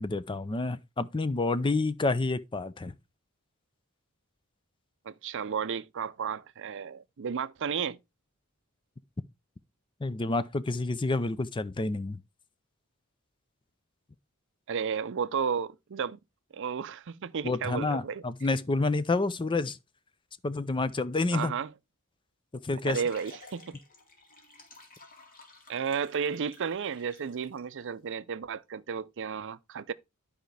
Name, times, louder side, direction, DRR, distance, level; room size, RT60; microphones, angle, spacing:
voice 1, 0.0-3.0 10.0-12.2 17.4-19.8 20.4-21.5 22.6-23.0, left 3 dB, 25° left, 0.5 m, -29 dB
voice 2, 5.1-8.0 14.7-16.2 16.5-18.2 21.3-21.7 22.8-23.8 25.7-29.9, right 6 dB, 60° right, 0.5 m, -33 dB
sound 1, 22.6-27.6, left 3 dB, 40° left, 2.2 m, -54 dB
11.5 x 5.0 x 3.3 m
head